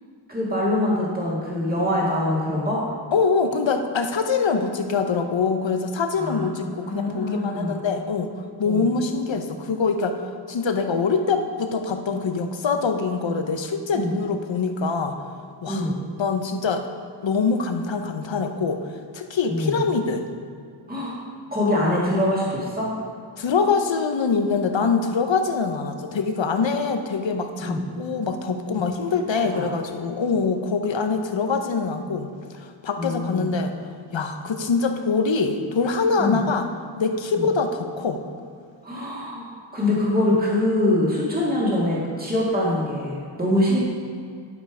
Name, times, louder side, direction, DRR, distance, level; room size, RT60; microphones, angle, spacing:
voice 1, 0.3-2.8 6.1-7.8 8.6-8.9 13.9-14.1 15.7-16.0 19.5-19.8 20.9-21.2 21.5-22.9 27.6-27.8 29.5-29.7 33.0-33.5 36.2-36.4 37.3-37.5 38.8-43.8, left 1 dB, 20° right, -6 dB, 2.1 m, -24 dB
voice 2, 3.1-8.3 8.6-10.2 10.5-15.2 15.6-15.9 16.2-16.8 17.2-18.8 19.1-20.3 23.4-33.7 34.1-36.7 37.0-38.2, left 4 dB, 75° left, 6 dB, 0.8 m, -24 dB
12.0 x 5.4 x 4.8 m, 2.3 s
wide cardioid pair, 80°, 45 cm